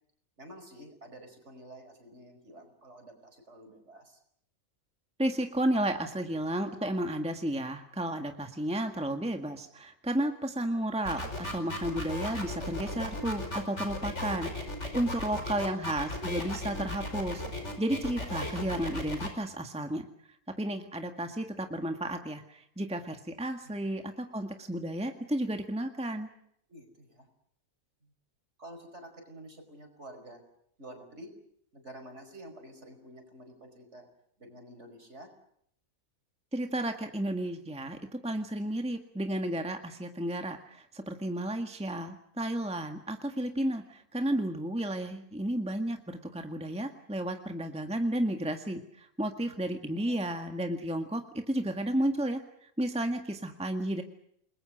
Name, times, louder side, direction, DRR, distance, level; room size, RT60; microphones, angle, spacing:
voice 1, 0.4-4.2 23.6-23.7 26.7-27.3 28.0-28.1 28.6-30.4 30.8-31.3 31.7-34.1 34.4-35.3 49.4-49.6 50.0-50.4, right 1 dB, 50° right, 5 dB, 5.7 m, -50 dB
voice 2, 5.2-11.2 11.5-14.5 14.9-17.4 17.8-20.1 20.6-26.3 36.5-51.2 51.5-54.0, right 1 dB, 5° right, 5 dB, 1.7 m, -32 dB
sound 1, 11.0-19.3, left 1 dB, 50° left, 5.3 m, -36 dB
29.5 x 21.0 x 6.5 m, 0.70 s
omnidirectional pair, 1.5 m